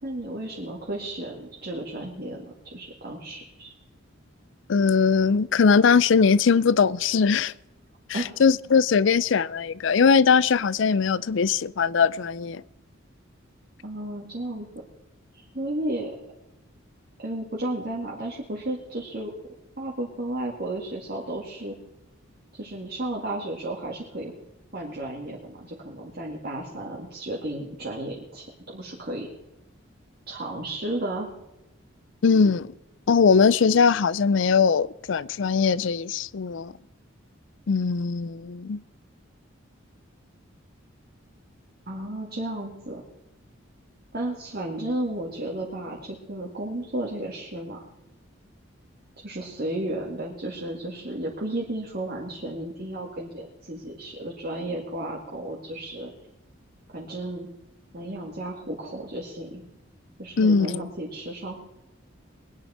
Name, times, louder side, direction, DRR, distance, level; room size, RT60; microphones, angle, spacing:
voice 1, 0.0-3.7 8.1-8.3 13.8-14.7 15.3-16.1 17.2-19.3 19.8-21.8 22.5-24.3 24.7-29.3 30.3-31.3 41.9-43.0 44.1-47.8 49.2-56.1 56.9-57.5 57.9-59.6 60.2-61.7, right 1 dB, 45° right, 2.0 m, -33 dB
voice 2, 4.7-7.5 8.1-12.6 32.2-32.7 33.1-36.7 37.7-38.8 60.4-60.8, left 5 dB, 60° left, 0.4 m, -20 dB
22.0 x 9.9 x 4.3 m
head